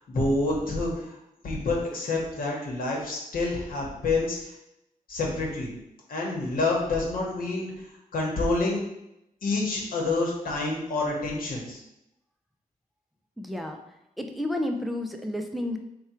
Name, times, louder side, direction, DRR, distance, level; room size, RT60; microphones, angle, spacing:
voice 1, 0.1-1.2 1.4-4.5 5.1-5.7 6.1-7.7 8.1-8.8 9.4-11.8, left 2 dB, 75° left, -2 dB, 1.0 m, -28 dB
voice 2, 13.4-13.8 14.2-15.8, left 1 dB, ahead, 4 dB, 0.3 m, -31 dB
3.5 x 2.2 x 4.3 m, 0.85 s
wide cardioid pair, 165°, 15 cm